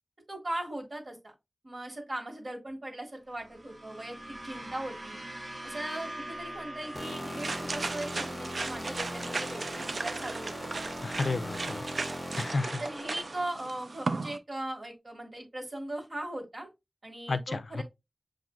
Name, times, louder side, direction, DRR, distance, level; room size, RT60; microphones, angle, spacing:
voice 1, 0.3-1.3 1.6-5.2 5.6-10.7 12.8-16.7 17.0-17.8, right 1 dB, 60° right, 1.4 m, -39 dB
sound 1, 3.3-11.7, right 1 dB, 35° right, 0.8 m, -45 dB
sound 2, 6.8-14.4, right 3 dB, 80° right, 0.3 m, -37 dB
sound 3, 6.9-13.4, equal, 15° left, 0.7 m, -40 dB
voice 2, 11.0-11.8 12.4-12.8 17.3-17.8, left 3 dB, 85° left, 0.3 m, -32 dB
7.2 x 2.5 x 2.3 m
wide cardioid pair, 80°, 0 cm